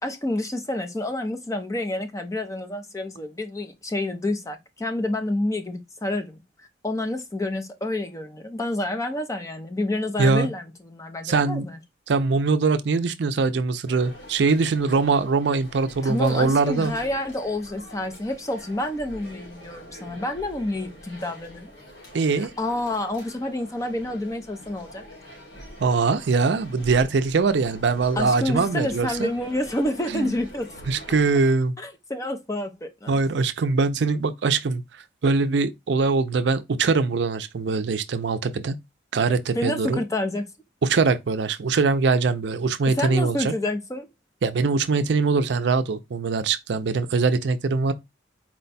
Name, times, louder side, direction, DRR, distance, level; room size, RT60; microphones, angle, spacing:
voice 1, 0.0-6.4 6.8-11.8 16.0-21.7 22.6-25.0 28.2-30.7 31.8-33.1 39.5-40.5 42.9-44.1, left 1 dB, 15° left, 0.5 m, -28 dB
voice 2, 10.2-10.5 11.2-11.7 12.1-16.9 22.1-22.5 25.8-29.3 30.1-30.3 30.9-31.7 33.1-34.8 35.2-38.8 39.1-40.0 40.8-43.5 44.4-47.9, right 4 dB, 65° right, 0.4 m, -22 dB
crowd int high school students gym active almost mono, 13.9-31.5, equal, 80° left, 2.1 m, -45 dB
4.4 x 2.2 x 4.0 m
head